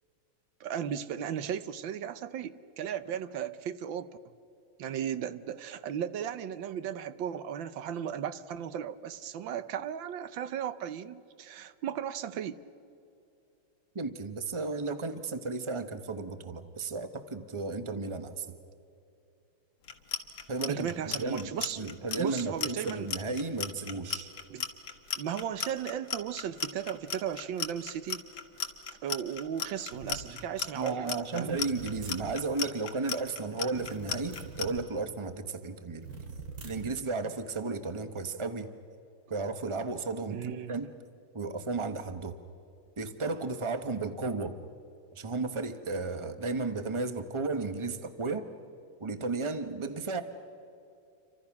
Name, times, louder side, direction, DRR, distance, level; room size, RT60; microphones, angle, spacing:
voice 1, 0.6-4.1 4.8-12.6 20.7-21.8 22.2-23.1 24.5-24.7 25.2-28.2 29.0-31.6 40.3-40.7, right 9 dB, 70° right, 14 dB, 1.5 m, -36 dB
voice 2, 13.9-18.5 20.5-21.5 21.8-24.3 30.7-36.1 36.6-38.7 39.3-40.9 41.3-42.3 43.0-44.6 45.1-48.5 49.0-50.2, right 3 dB, 50° right, 9 dB, 0.3 m, -34 dB
Clock, 19.8-34.7, left 7 dB, 70° left, 2.3 m, -35 dB
sound 1, 29.9-30.3 31.5-32.4 33.7-34.9 36.0-37.0, right 4 dB, 90° right, 3.0 m, -43 dB
29.0 x 25.5 x 5.9 m, 2.6 s
omnidirectional pair, 2.3 m